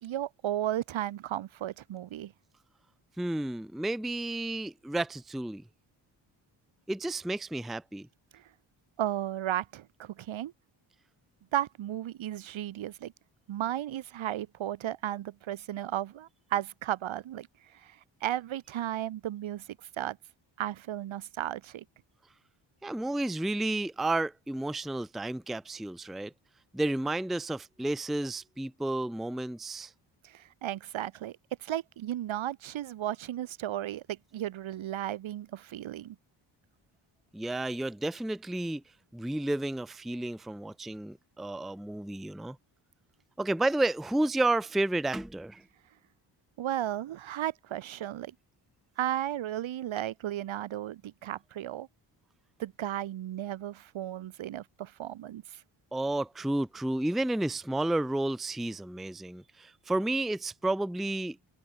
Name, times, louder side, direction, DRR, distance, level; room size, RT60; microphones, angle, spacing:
voice 1, 0.0-2.3 8.3-8.4 9.0-10.5 11.5-13.1 13.5-17.5 17.7-19.7 20.0-20.2 20.6-21.8 30.2-36.2 46.6-48.3 49.0-51.9 52.6-55.6, right 12 dB, 75° right, 2.7 m, -34 dB
voice 2, 3.2-5.6 6.9-8.1 22.8-26.3 26.7-29.9 37.3-38.8 39.1-42.6 43.4-45.6 55.9-61.4, right 2 dB, ahead, 0.6 m, -31 dB
cardioid pair, 75°, 47 cm